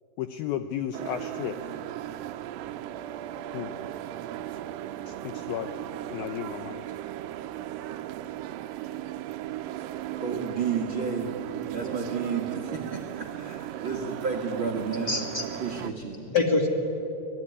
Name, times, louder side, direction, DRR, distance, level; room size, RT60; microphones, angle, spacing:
voice 1, 0.2-1.7 3.5-3.8 5.1-5.8 6.1-6.8, left 10 dB, 80° left, 9 dB, 2.2 m, -34 dB
sound 1, 0.9-15.9, right 12 dB, 85° right, 1.9 m, -36 dB
voice 2, 10.2-11.3 11.7-15.2 15.6-16.3, right 5 dB, 50° right, 3 dB, 1.5 m, -32 dB
voice 3, 15.1-16.7, left 3 dB, 35° left, 2 dB, 1.7 m, -27 dB
24.5 x 19.5 x 9.7 m, 2.9 s
omnidirectional pair, 4.9 m